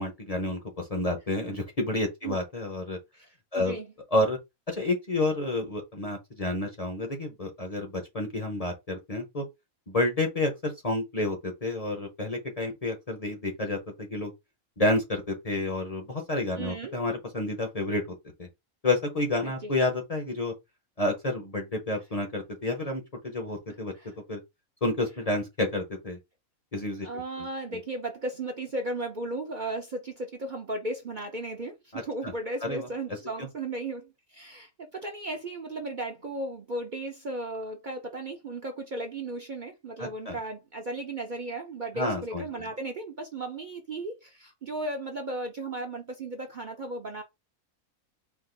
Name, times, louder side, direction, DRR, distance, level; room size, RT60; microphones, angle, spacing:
voice 1, 0.0-3.0 3.5-3.7 4.1-4.4 4.7-9.4 9.9-14.3 14.8-18.5 18.8-20.5 21.0-23.9 24.3-24.4 24.8-26.2 26.7-27.1 31.9-32.3 32.6-32.9 33.4-33.5 40.0-40.4 42.0-42.6, left 2 dB, 30° left, 0.8 m, -30 dB
voice 2, 3.5-3.9 16.6-16.9 19.4-19.7 23.9-24.1 27.0-47.2, right 2 dB, 45° right, 0.8 m, -35 dB
4.5 x 2.5 x 3.8 m
omnidirectional pair, 1.5 m